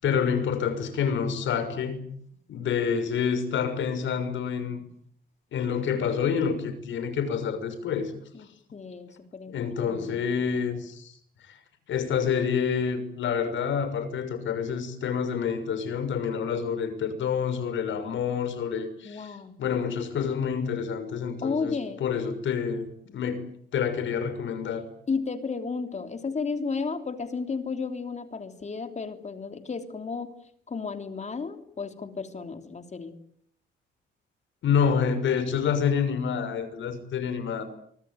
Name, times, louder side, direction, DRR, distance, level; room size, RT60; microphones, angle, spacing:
voice 1, 0.0-2.0 2.5-4.8 5.5-8.1 9.5-11.1 11.5-11.6 11.9-23.4 23.7-24.8 34.6-37.6, left 7 dB, 70° left, 10 dB, 6.3 m, -28 dB
voice 2, 8.3-10.3 19.0-19.6 21.4-22.0 25.1-30.4 30.7-33.2, left 4 dB, 35° left, 8 dB, 3.3 m, -33 dB
24.5 x 24.0 x 9.3 m, 0.65 s
cardioid pair, 90°, 20 cm